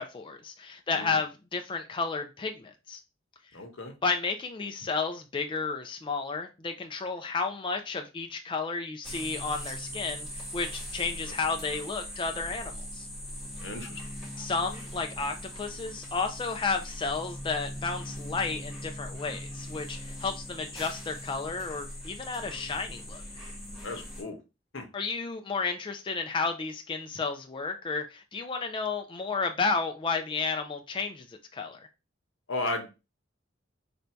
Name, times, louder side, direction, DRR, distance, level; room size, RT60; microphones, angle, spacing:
voice 1, 0.0-3.0 4.0-13.1 14.4-23.2 24.9-31.9, left 4 dB, 25° left, 0.4 m, -32 dB
voice 2, 3.5-4.0 13.6-14.0 23.8-24.4 24.7-24.9 32.5-32.9, left 2 dB, 80° left, 1.0 m, -35 dB
sound 1, 9.0-24.2, equal, ahead, 1.9 m, -40 dB
3.4 x 2.7 x 4.3 m
head